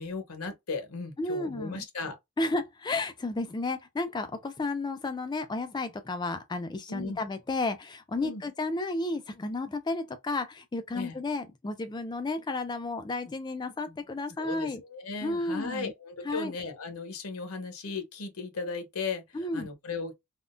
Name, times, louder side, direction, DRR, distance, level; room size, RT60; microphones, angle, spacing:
voice 1, 0.0-2.2 6.9-7.2 8.2-8.4 10.9-11.1 14.4-20.2, left 4 dB, 85° left, 0.8 m, -36 dB
voice 2, 1.2-1.8 2.4-14.8 15.2-15.9 16.2-16.5 19.3-19.7, left 2 dB, 20° left, 0.3 m, -32 dB
3.5 x 2.1 x 2.4 m
head